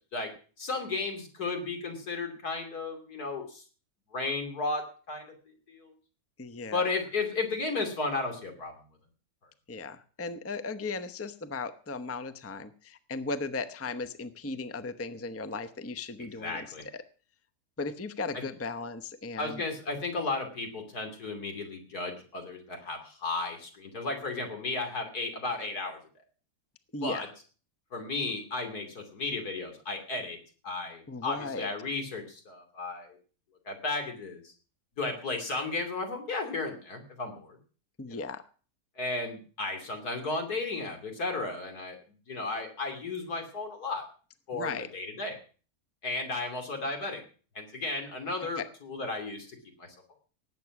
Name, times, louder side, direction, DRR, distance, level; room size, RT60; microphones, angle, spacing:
voice 1, 0.6-3.6 4.1-5.3 5.7-5.9 6.7-8.7 16.4-16.8 19.4-26.0 27.0-27.3 27.9-30.4 30.6-33.2 33.7-34.4 35.0-37.6 38.1-38.2 39.0-42.0 42.3-44.0 44.5-45.4 46.0-47.2 47.5-49.9, left 3 dB, 80° left, 4 dB, 3.3 m, -34 dB
voice 2, 6.4-6.8 9.7-16.7 16.9-17.0 17.8-19.6 26.9-27.3 31.1-31.7 38.0-38.4 44.5-44.9 48.6-48.7, left 3 dB, 15° left, 11 dB, 0.6 m, -36 dB
18.5 x 8.2 x 6.0 m, 0.40 s
omnidirectional pair, 1.6 m